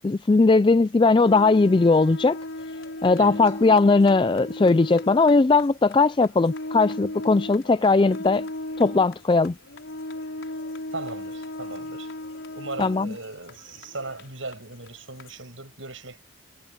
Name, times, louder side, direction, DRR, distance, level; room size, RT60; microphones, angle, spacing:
voice 1, 0.0-2.4 3.0-8.5 8.8-9.6 12.8-13.1, left 3 dB, 25° left, 0.3 m, -19 dB
sound 1, 1.2-15.4, left 1 dB, 90° left, 5.2 m, -37 dB
voice 2, 3.2-3.5 10.9-12.1 12.5-16.2, right 3 dB, 80° right, 7.7 m, -38 dB
head